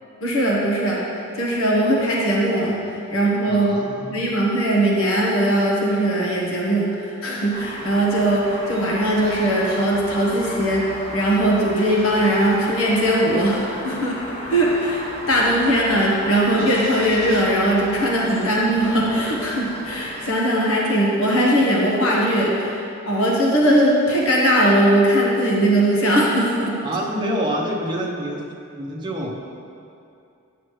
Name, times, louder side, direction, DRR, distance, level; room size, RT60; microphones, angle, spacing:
voice 1, 0.2-1.0 1.4-3.8 4.1-26.8, right 1 dB, 75° left, -4 dB, 1.2 m, -20 dB
voice 2, 3.5-4.2 26.8-28.4 28.7-29.3, equal, 20° right, -3 dB, 0.8 m, -27 dB
sound 1, 7.5-20.3, equal, 30° left, 1.7 m, -35 dB
10.0 x 6.2 x 3.1 m, 2.6 s
head